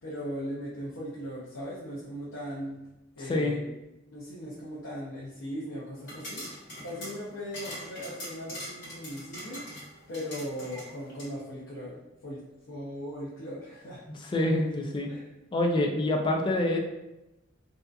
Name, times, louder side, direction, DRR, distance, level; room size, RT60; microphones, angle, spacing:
voice 1, 0.0-2.9 3.2-3.7 4.1-6.5 6.8-9.6 10.1-12.4 12.7-14.0 15.1-15.3, equal, 85° left, -8 dB, 0.6 m, -38 dB
voice 2, 3.2-3.5 14.2-15.1 15.5-16.8, left 1 dB, 25° left, 1 dB, 0.3 m, -26 dB
sound 1, 6.0-11.3, equal, 60° left, 1.4 m, -42 dB
2.7 x 2.4 x 2.2 m, 0.96 s
head